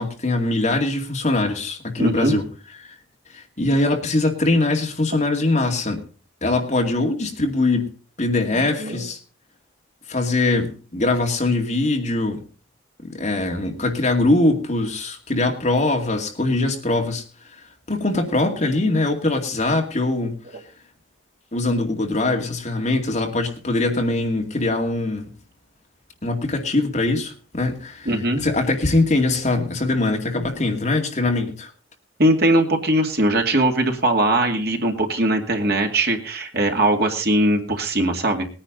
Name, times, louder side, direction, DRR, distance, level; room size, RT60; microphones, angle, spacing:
voice 1, 0.0-2.4 2.8-3.0 3.3-6.0 6.4-7.9 8.2-9.2 10.1-12.4 13.0-17.2 17.9-20.3 21.5-25.3 26.2-28.2 28.4-31.7, left 2 dB, 35° left, 2 dB, 2.3 m, -22 dB
voice 2, 2.0-2.4 8.5-9.1 28.1-28.4 32.2-38.5, right 1 dB, 55° right, 2 dB, 2.4 m, -20 dB
20.0 x 9.9 x 3.9 m, 0.38 s
head